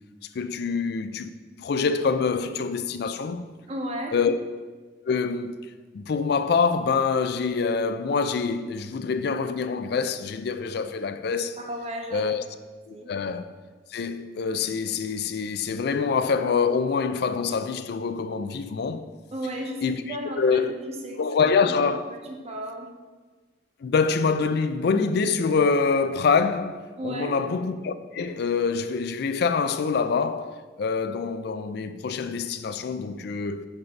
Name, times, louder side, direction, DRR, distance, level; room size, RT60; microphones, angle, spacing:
voice 1, 0.3-1.3 1.6-3.5 4.1-4.4 5.1-5.6 5.9-11.6 12.1-12.4 12.9-13.5 13.9-19.1 19.8-20.7 21.2-22.2 23.8-33.6, left 5 dB, 60° left, 0.4 m, -25 dB
voice 2, 3.7-4.2 11.6-12.3 12.9-13.1 19.3-21.2 21.6-21.8 22.2-22.9 27.0-27.4, right 1 dB, 35° right, 0.7 m, -34 dB
5.3 x 3.9 x 5.9 m
head